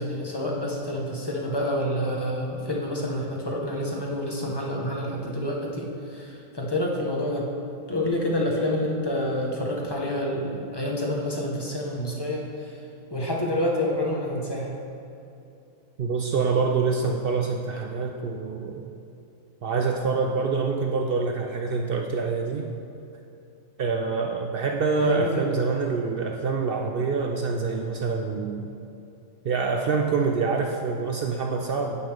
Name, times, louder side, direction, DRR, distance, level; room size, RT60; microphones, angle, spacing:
voice 1, 0.0-5.9 6.1-7.5 7.9-12.4 13.1-14.7 25.0-25.5, left 1 dB, 20° left, -2 dB, 0.9 m, -28 dB
voice 2, 16.0-18.9 19.6-22.7 23.8-28.7 29.4-32.0, right 4 dB, 65° right, 2 dB, 0.6 m, -26 dB
9.5 x 7.8 x 3.4 m, 2.7 s
omnidirectional pair, 1.4 m